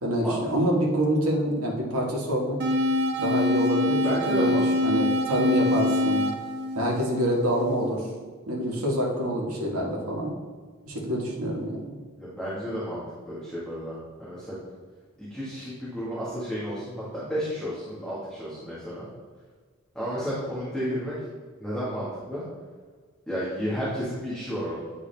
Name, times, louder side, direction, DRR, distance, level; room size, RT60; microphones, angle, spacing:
voice 1, 0.0-2.6 3.2-6.3 6.7-8.1 8.5-10.3 10.9-11.9, equal, 85° right, -3 dB, 1.6 m, -26 dB
sound 1, 2.6-7.6, left 1 dB, 50° right, 0.6 m, -25 dB
voice 2, 4.0-5.0 12.2-14.5 15.2-19.1 19.9-21.2 21.6-22.4 23.3-24.8, equal, 5° left, -10 dB, 1.5 m, -32 dB
9.5 x 3.6 x 3.4 m, 1.5 s
head